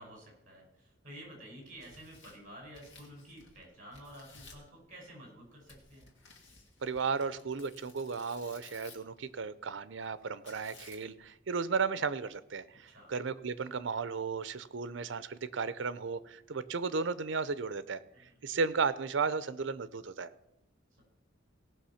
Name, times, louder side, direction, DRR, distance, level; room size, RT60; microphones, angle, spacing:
voice 1, 0.0-6.1 12.8-13.1 18.1-18.4, equal, 40° right, 0 dB, 5.8 m, -51 dB
Tearing, 1.6-3.6 3.9-4.7 5.7-9.2 10.5-11.3, left 4 dB, 70° left, 2.4 m, -56 dB
voice 2, 6.8-18.0 18.4-20.3, right 5 dB, 75° right, 16 dB, 0.6 m, -34 dB
17.5 x 6.1 x 5.8 m, 0.84 s
head